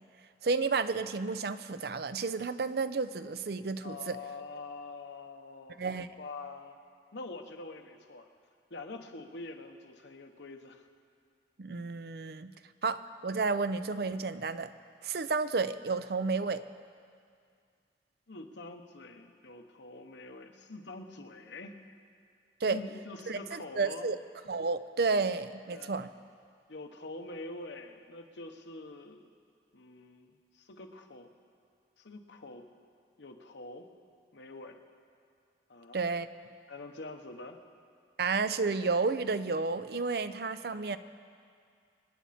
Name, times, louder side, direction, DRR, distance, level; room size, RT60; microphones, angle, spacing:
voice 1, 0.4-4.2 5.8-6.1 11.6-12.5 12.8-14.7 15.0-16.6 22.6-22.8 23.3-24.2 24.5-26.1 35.9-36.3 38.2-41.0, right 4 dB, 60° right, 12 dB, 0.5 m, -31 dB
voice 2, 3.8-6.8 7.1-8.3 8.7-10.8 18.3-21.8 22.7-24.1 25.7-25.9 26.7-29.3 29.7-31.3 32.0-32.7 33.2-33.9 34.3-34.8 35.7-36.1 36.7-37.6, left 2 dB, 80° left, 5 dB, 1.1 m, -45 dB
26.5 x 9.7 x 4.3 m, 2.3 s
head